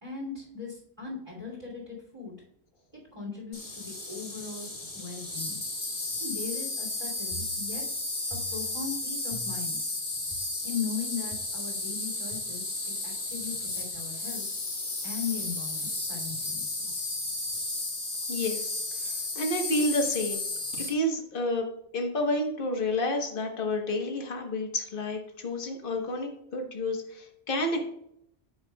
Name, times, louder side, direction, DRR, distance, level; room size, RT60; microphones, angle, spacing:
voice 1, 0.0-2.3 3.1-5.6 6.2-7.8 8.3-9.8 10.6-14.5 15.0-16.9, left 6 dB, 30° right, -6 dB, 2.9 m, -38 dB
Insect, 3.5-20.9, left 2 dB, 80° left, 2.7 m, -33 dB
sound 1, 7.3-8.0 8.3-8.9 9.3-9.8 10.3-10.4 11.3-11.4 12.3-12.4 13.3-13.4 14.3-14.4, right 3 dB, 10° left, 1.0 m, -45 dB
voice 2, 18.3-18.7 19.0-20.4 20.8-21.6 21.9-27.8, left 1 dB, 55° left, 2 dB, 1.4 m, -30 dB
10.5 x 7.2 x 2.3 m, 0.74 s
omnidirectional pair, 1.1 m